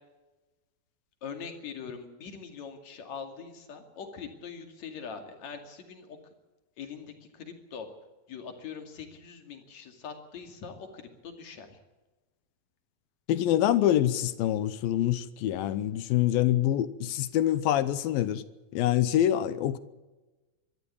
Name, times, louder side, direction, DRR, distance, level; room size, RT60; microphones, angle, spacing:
voice 1, 1.2-6.2 6.8-7.9 8.3-11.8, left 6 dB, 50° left, 3.4 m, -42 dB
voice 2, 13.3-18.4 18.7-19.8, left 12 dB, 80° left, 2.6 m, -25 dB
23.0 x 13.5 x 8.7 m
omnidirectional pair, 4.3 m